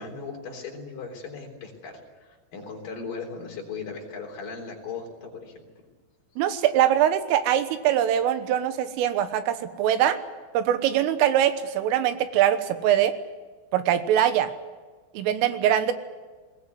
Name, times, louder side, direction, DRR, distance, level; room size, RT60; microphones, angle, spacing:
voice 1, 0.0-5.7, left 4 dB, 45° left, 0 dB, 5.0 m, -38 dB
voice 2, 6.4-10.2 10.6-13.1 13.7-14.5 15.1-15.9, right 11 dB, 90° right, 10 dB, 3.8 m, -22 dB
20.0 x 20.0 x 9.4 m, 1.4 s
omnidirectional pair, 5.7 m